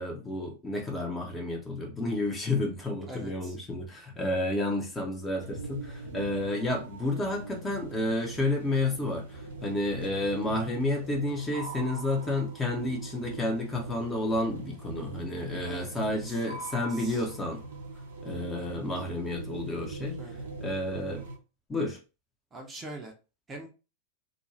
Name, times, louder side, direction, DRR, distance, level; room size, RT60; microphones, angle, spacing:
voice 1, 0.0-17.6 18.2-20.2 20.6-21.3 21.7-22.0, left 2 dB, 15° left, 0.8 m, -31 dB
voice 2, 3.1-3.5 15.6-16.4 16.9-17.2 18.6-18.7 20.2-20.4 22.5-23.1 23.5-23.7, right 2 dB, 20° right, 0.7 m, -43 dB
sound 1, 5.4-21.4, right 3 dB, 65° right, 0.8 m, -41 dB
2.5 x 2.3 x 3.0 m
figure-of-eight pair, 90°, 0 cm